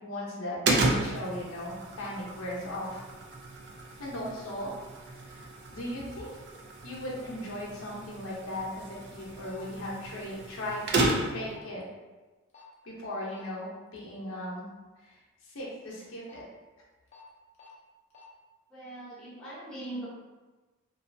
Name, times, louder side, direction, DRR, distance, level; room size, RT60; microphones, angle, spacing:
voice 1, 0.0-3.1 4.0-4.7 5.1-5.4 5.7-6.3 6.8-8.8 9.1-11.8 12.8-14.7 15.0-15.1 15.4-16.4, left 1 dB, 80° left, -5 dB, 0.7 m, -37 dB
sound 1, 0.6-11.5, right 2 dB, 50° right, 0.4 m, -33 dB
sound 2, 9.4-9.6 10.6-10.8 11.5-11.7 12.5-12.7 13.3-13.5 16.0-16.4 17.1-17.2 17.5-17.7 18.1-18.2, left 4 dB, 30° left, 0.5 m, -53 dB
voice 2, 18.7-20.1, right 1 dB, 5° left, -11 dB, 0.8 m, -40 dB
2.6 x 2.3 x 2.6 m, 1.2 s
head